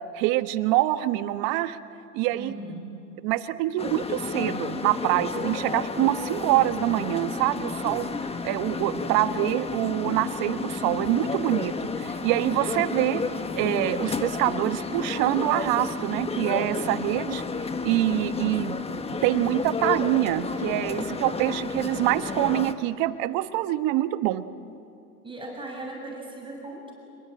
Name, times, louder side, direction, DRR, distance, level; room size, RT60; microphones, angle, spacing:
voice 1, 0.1-1.8 2.1-2.5 3.2-8.1 8.4-13.2 13.6-17.4 17.8-18.8 19.1-24.4, right 15 dB, 50° right, 11 dB, 1.3 m, -25 dB
voice 2, 2.3-3.0 25.2-26.9, right 2 dB, 10° right, -1 dB, 7.1 m, -38 dB
sound 1, 3.8-22.7, left 4 dB, 15° left, 1.4 m, -31 dB
26.5 x 22.5 x 8.8 m, 2.7 s
hypercardioid pair, 110°, 43 cm